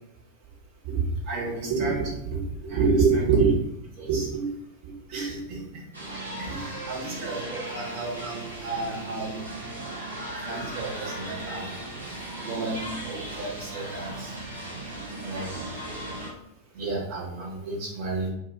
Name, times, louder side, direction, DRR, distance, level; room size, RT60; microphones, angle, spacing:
voice 1, 0.8-3.6 4.0-4.5 4.8-5.6 6.4-6.6 6.9-9.4 10.5-11.6 12.4-14.3 15.2-15.6 16.7-18.3, right 4 dB, 45° right, -4 dB, 1.3 m, -28 dB
sound 1, 5.9-16.3, right 1 dB, 80° right, 0.8 m, -37 dB
2.6 x 2.4 x 4.1 m, 0.82 s
figure-of-eight pair, 90°, 0 cm